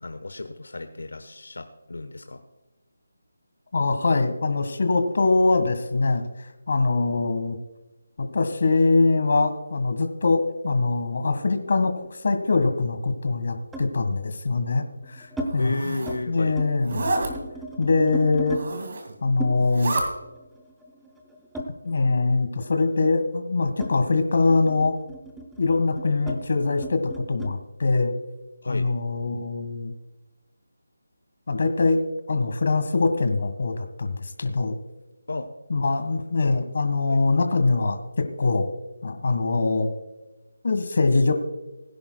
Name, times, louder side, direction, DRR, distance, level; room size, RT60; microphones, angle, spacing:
voice 1, 0.0-2.4 15.6-16.5 28.6-28.9 35.3-35.5 36.4-36.6 37.1-37.2, left 2 dB, 80° left, 8 dB, 1.0 m, -33 dB
voice 2, 3.7-6.2 6.7-7.6 8.2-15.3 15.5-15.8 16.3-17.1 17.8-18.6 19.2-20.0 21.8-24.9 25.6-28.1 28.7-29.9 31.5-32.0 32.3-34.7 35.7-38.7 39.0-39.9 40.6-41.3, left 3 dB, 50° left, 8 dB, 1.6 m, -23 dB
sound 1, 10.9-12.4 13.7-14.0 14.7-15.5 15.9-16.2 16.5-18.6 19.4-22.3 22.6-27.6, right 1 dB, 5° right, 0.8 m, -38 dB
Zipper (clothing), 15.4-16.2 16.8-17.3 18.4-19.1 19.5-20.1, right 2 dB, 45° right, 2.2 m, -29 dB
21.0 x 10.5 x 2.3 m, 1.1 s
figure-of-eight pair, 170°, 0 cm